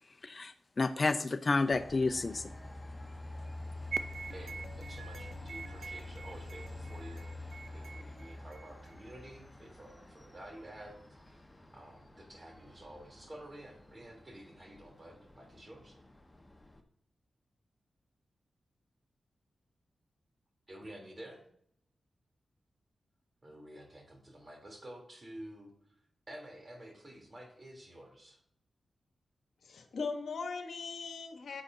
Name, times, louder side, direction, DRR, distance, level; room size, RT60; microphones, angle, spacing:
voice 1, 0.2-2.5, left 3 dB, 45° left, 10 dB, 0.5 m, -30 dB
Train, 1.7-16.8, left 2 dB, 15° left, 1.2 m, -48 dB
sound 1, 3.9-8.9, right 5 dB, 75° right, 0.5 m, -44 dB
voice 2, 4.3-11.4 11.7-16.0 20.7-21.4 23.4-25.7 26.3-28.4, right 1 dB, 40° right, 1 dB, 3.2 m, -51 dB
voice 3, 29.6-31.6, left 4 dB, 75° left, 5 dB, 1.1 m, -39 dB
8.8 x 8.8 x 2.7 m, 0.68 s
cardioid pair, 45°, 0 cm